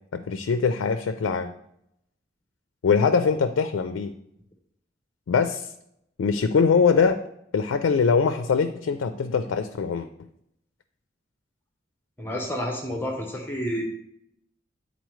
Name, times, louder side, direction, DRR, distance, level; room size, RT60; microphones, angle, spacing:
voice 1, 0.1-1.5 2.8-4.1 5.3-5.7 6.2-7.2 7.5-10.1, left 5 dB, 90° left, 9 dB, 0.4 m, -22 dB
voice 2, 12.2-13.8, equal, 10° left, 1 dB, 0.7 m, -30 dB
9.3 x 4.1 x 3.1 m, 0.77 s
head